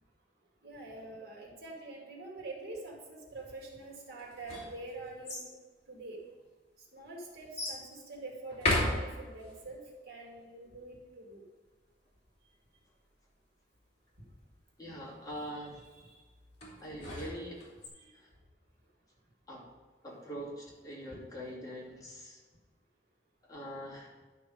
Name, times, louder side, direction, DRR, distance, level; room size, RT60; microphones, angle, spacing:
voice 1, 0.6-5.5 5.9-6.2 6.9-11.4 16.0-16.1 18.0-18.1, right 2 dB, 65° right, -2 dB, 2.4 m, -45 dB
sound 1, 4.2-5.5 6.3-6.4 7.6-7.8 8.5-9.5 16.6-17.9, left 1 dB, 40° left, 3.0 m, -34 dB
voice 2, 14.8-15.8 16.8-17.6 18.1-18.3 19.5-19.7 20.0-22.4 23.4-24.1, equal, 20° left, -6 dB, 2.7 m, -43 dB
11.5 x 6.0 x 5.1 m, 1.4 s
head